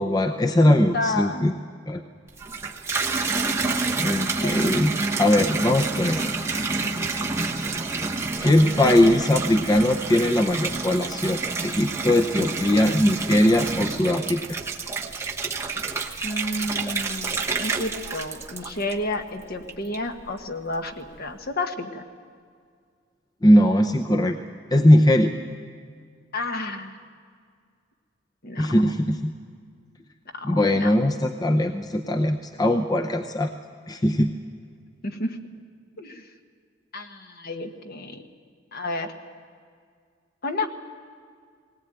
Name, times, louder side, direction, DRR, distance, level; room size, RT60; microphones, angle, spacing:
voice 1, 0.0-1.5 1.9-2.0 4.0-6.2 8.4-14.6 23.4-24.4 24.7-25.3 28.6-29.3 30.4-33.5 33.9-34.3, left 1 dB, 20° left, 5 dB, 0.7 m, -20 dB
voice 2, 0.6-1.5 4.4-4.9 8.8-9.2 16.2-22.0 26.3-27.0 28.4-29.0 30.3-30.9 35.0-35.4 36.0-36.3 36.9-38.2 38.7-39.1 40.4-40.7, left 2 dB, 50° left, 5 dB, 1.4 m, -31 dB
Water tap faucet / Bathtub (filling or washing), 2.3-19.2 19.7-20.3, right 3 dB, 15° right, 1.1 m, -28 dB
19.0 x 18.5 x 9.0 m, 2.1 s
head